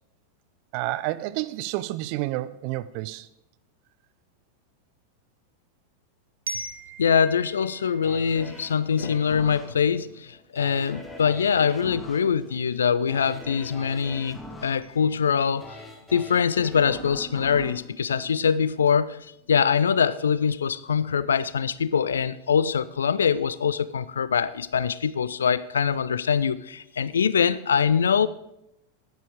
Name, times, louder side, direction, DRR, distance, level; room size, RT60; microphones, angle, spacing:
voice 1, 0.7-3.3, right 16 dB, 45° right, 15 dB, 0.5 m, -30 dB
Glockenspiel, 6.5-9.3, right 2 dB, 75° right, 1.2 m, -40 dB
voice 2, 7.0-15.8 16.1-28.3, left 7 dB, 70° left, 17 dB, 0.4 m, -23 dB
sound 1, 8.0-19.0 19.4-19.5, left 1 dB, 5° left, 1.7 m, -43 dB
9.7 x 9.5 x 4.9 m, 0.82 s
figure-of-eight pair, 90°, 0 cm